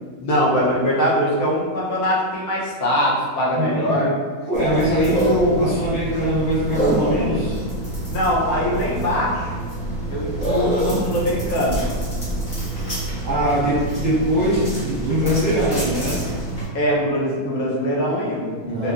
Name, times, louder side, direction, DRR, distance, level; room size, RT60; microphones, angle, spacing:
voice 1, 0.2-4.1 8.1-9.6 10.1-11.8 16.7-18.9, equal, 75° left, -4 dB, 1.1 m, -22 dB
voice 2, 3.5-4.1 4.5-7.6 13.2-16.3 18.6-18.9, equal, 35° right, -11 dB, 0.8 m, -21 dB
sound 1, 4.5-16.6, right 1 dB, 35° left, 1.0 m, -26 dB
2.9 x 2.8 x 2.4 m, 1.5 s
omnidirectional pair, 1.6 m